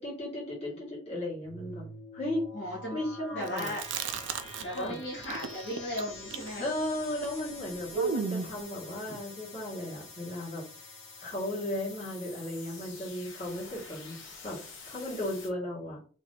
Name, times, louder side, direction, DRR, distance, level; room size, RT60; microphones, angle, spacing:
voice 1, 0.0-1.9 2.1-3.7 4.7-5.0 6.6-10.6 11.2-14.1 14.4-14.6 14.8-16.0, left 1 dB, 30° left, -6 dB, 1.7 m, -35 dB
sound 1, 1.4-15.5, left 3 dB, 75° left, 1.0 m, -47 dB
voice 2, 2.5-3.0 3.3-3.8 4.6-6.7 9.1-9.2, equal, 55° left, -6 dB, 1.3 m, -36 dB
Chewing mastication, 3.5-4.9 5.2-8.6, right 5 dB, 65° right, 0.4 m, -35 dB
3.2 x 2.6 x 3.8 m, 0.40 s
head